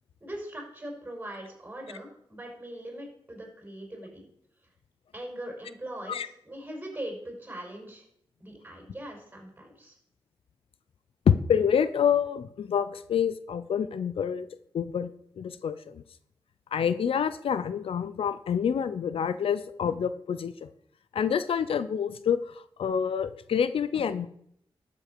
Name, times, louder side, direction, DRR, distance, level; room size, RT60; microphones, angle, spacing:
voice 1, 0.2-4.3 5.1-8.0 8.4-10.0, right 1 dB, 20° right, 1 dB, 5.7 m, -41 dB
voice 2, 11.3-14.5 14.7-16.0 16.7-20.7 21.1-24.3, left 7 dB, 85° left, 14 dB, 0.7 m, -27 dB
12.5 x 8.2 x 6.8 m, 0.69 s
wide cardioid pair, 95°, 9 cm